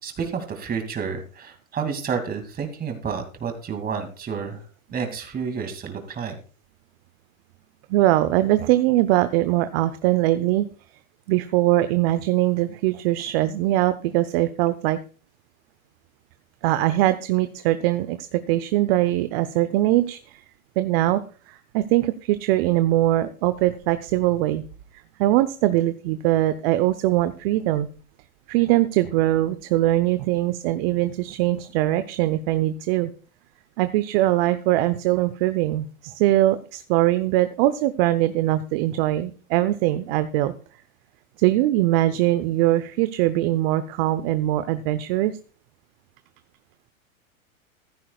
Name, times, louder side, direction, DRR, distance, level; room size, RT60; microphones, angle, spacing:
voice 1, 0.0-6.4, right 6 dB, 20° right, 5 dB, 2.6 m, -30 dB
voice 2, 7.9-10.7 11.3-15.0 16.6-20.4 20.8-21.2 21.5-24.6 25.2-27.9 28.5-33.1 33.8-40.5 41.4-45.3, right 15 dB, 45° right, 12 dB, 0.8 m, -21 dB
15.0 x 12.5 x 2.4 m, 0.39 s
hypercardioid pair, 115°, 42 cm